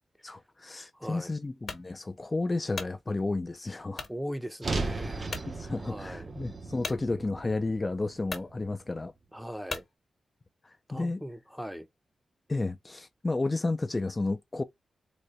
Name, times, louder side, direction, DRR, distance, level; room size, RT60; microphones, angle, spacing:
voice 1, 0.2-4.1 5.5-9.1 10.6-11.2 12.5-14.6, left 2 dB, 30° left, 0.4 m, -32 dB
voice 2, 0.9-1.4 4.1-5.5 5.8-6.3 9.3-9.9 10.9-11.9, equal, 5° right, 0.7 m, -39 dB
sound 1, 1.7-1.9 2.5-3.0 3.9-4.2 4.7-4.8 5.3-5.5 6.8-7.0 7.8-7.9 8.2-8.5 9.7-9.9, left 4 dB, 60° left, 1.2 m, -38 dB
sound 2, 4.6-8.9, right 3 dB, 45° right, 0.8 m, -36 dB
4.0 x 2.2 x 3.1 m
cardioid pair, 60°, 0 cm